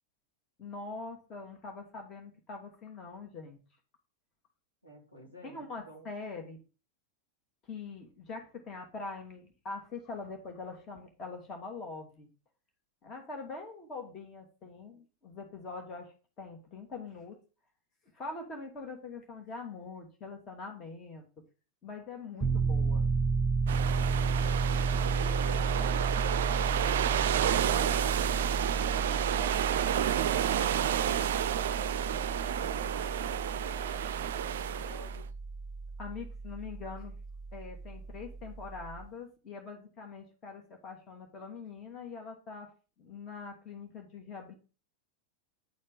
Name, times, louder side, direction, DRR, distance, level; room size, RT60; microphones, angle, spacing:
voice 1, 0.6-3.6 5.5-6.6 7.6-12.3 13.0-17.4 18.1-21.2 21.8-23.1 36.0-37.1 37.5-42.7 43.0-44.5, left 4 dB, 30° left, 3 dB, 2.1 m, -43 dB
voice 2, 4.8-6.1, equal, 90° left, -4 dB, 3.2 m, -52 dB
Piano, 22.4-39.1, right 4 dB, 5° right, 1.1 m, -33 dB
sound 1, 23.7-35.2, right 10 dB, 55° right, 0.4 m, -31 dB
10.0 x 4.3 x 5.3 m, 0.34 s
figure-of-eight pair, 90°, 0 cm